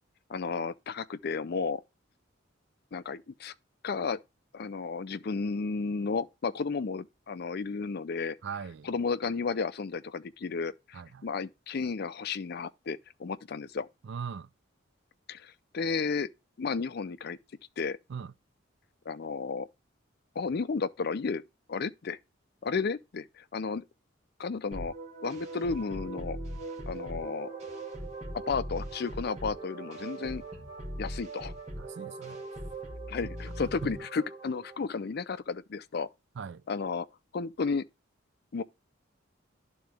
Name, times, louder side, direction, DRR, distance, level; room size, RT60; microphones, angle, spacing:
voice 1, 0.3-1.8 2.9-3.5 3.8-4.2 4.5-8.4 8.8-13.9 15.3-16.3 16.6-17.4 17.8-18.0 19.1-19.7 20.4-21.4 21.7-22.2 22.6-23.8 24.4-24.9 25.2-26.4 26.9-27.5 28.5-30.4 31.0-31.5 33.1-36.1 36.7-37.1 37.3-37.8 38.5-38.6, left 4 dB, 50° left, 0.4 m, -33 dB
voice 2, 8.4-8.9 10.9-11.2 14.0-14.5 18.1-18.3 31.8-32.4 33.8-33.9 36.4-36.6, right 6 dB, 60° right, 0.4 m, -39 dB
sound 1, 24.7-34.8, right 1 dB, 35° right, 2.2 m, -40 dB
11.5 x 3.9 x 3.3 m
head